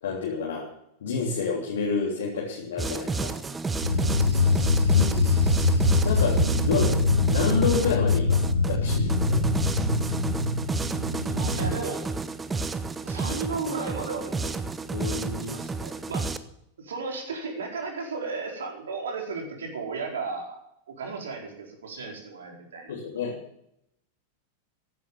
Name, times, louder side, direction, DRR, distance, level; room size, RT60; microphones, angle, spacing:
voice 1, 0.0-0.7 1.0-3.4 4.9-5.4 6.0-9.4 14.9-15.6 22.9-23.3, left 5 dB, 60° left, -3 dB, 3.2 m, -29 dB
sound 1, 2.8-16.4, right 3 dB, 15° right, 1.0 m, -31 dB
sound 2, 3.8-11.7, left 3 dB, 90° right, 3.0 m, -23 dB
voice 2, 4.3-4.7 11.4-12.0 13.0-14.6 15.4-16.3 16.8-20.6 20.9-22.9, right 4 dB, 65° right, 1 dB, 4.5 m, -34 dB
15.0 x 11.0 x 7.1 m, 0.77 s
figure-of-eight pair, 90°, 0 cm